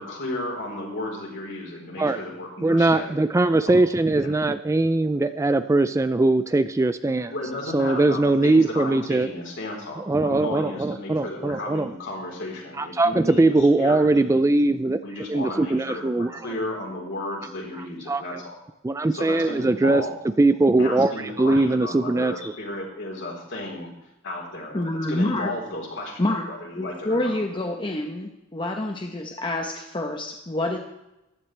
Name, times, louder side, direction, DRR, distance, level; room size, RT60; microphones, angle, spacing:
voice 1, 0.0-3.2 3.7-3.8 4.2-4.3 7.3-14.1 15.0-18.5 19.0-20.2 20.8-23.9 24.2-26.2 26.5-27.4, left 1 dB, 65° left, -2 dB, 4.0 m, -34 dB
voice 2, 2.6-7.3 7.7-9.3 10.0-11.9 12.8-15.0 15.3-16.3 18.1-18.2 18.8-20.0 20.4-22.5, right 2 dB, 15° right, 12 dB, 0.3 m, -21 dB
voice 3, 24.7-25.5 26.2-26.5 26.8-30.8, left 1 dB, 25° left, 2 dB, 0.9 m, -27 dB
15.0 x 11.5 x 3.3 m, 0.94 s
head